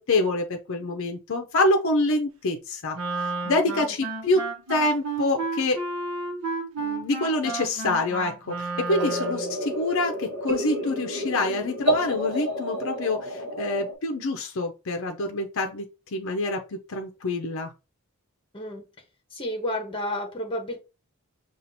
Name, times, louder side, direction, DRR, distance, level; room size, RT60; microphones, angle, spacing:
voice 1, 0.0-5.8 6.8-17.7, left 2 dB, 65° left, 3 dB, 0.6 m, -26 dB
Wind instrument woodwind instrument, 2.9-9.6, right 3 dB, 70° right, 0.9 m, -32 dB
sound 1, 8.9-13.9, equal, 50° right, 1.2 m, -30 dB
voice 2, 19.3-20.8, left 1 dB, 25° left, 2 dB, 1.0 m, -31 dB
5.8 x 2.4 x 2.7 m, 0.28 s
head